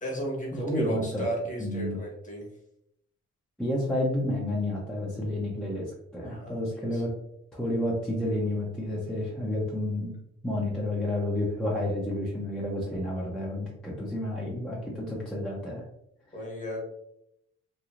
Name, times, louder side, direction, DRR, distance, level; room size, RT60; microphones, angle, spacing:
voice 1, 0.0-2.5 6.2-7.0 16.3-16.8, right 1 dB, 25° left, -1 dB, 1.1 m, -34 dB
voice 2, 0.5-1.2 1.6-2.0 3.6-7.1 7.5-10.1 10.4-15.8, left 1 dB, ahead, -5 dB, 0.6 m, -30 dB
3.0 x 2.3 x 2.4 m, 0.76 s
cardioid pair, 90°, 30 cm